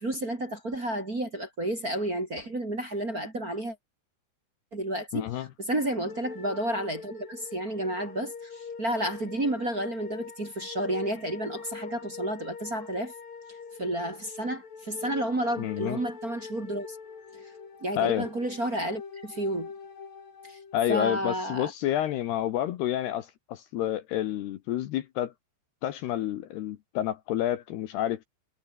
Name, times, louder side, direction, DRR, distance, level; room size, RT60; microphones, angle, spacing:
voice 1, 0.0-3.8 4.7-13.1 13.8-17.0 17.4-17.5 17.8-19.7 20.4-20.6 20.9-21.7, right 1 dB, 20° right, 2.9 m, -31 dB
voice 2, 5.1-5.5 15.6-16.0 18.0-18.3 20.7-25.3 25.8-28.2, left 12 dB, 70° left, 2.9 m, -29 dB
sound 1, 6.1-21.2, left 5 dB, 50° left, 6.1 m, -43 dB
omnidirectional pair, 5.4 m